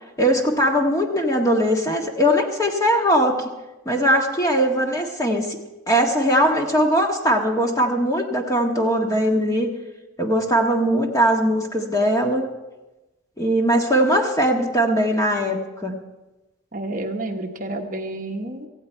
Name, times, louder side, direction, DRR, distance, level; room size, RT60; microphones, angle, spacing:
voice 1, 0.2-3.4 3.8-5.6 5.9-9.7 10.2-12.4 13.4-15.9, equal, 15° left, 1 dB, 1.6 m, -20 dB
voice 2, 16.7-18.7, right 2 dB, 40° right, 3 dB, 1.1 m, -30 dB
18.0 x 15.0 x 4.5 m, 1.1 s
head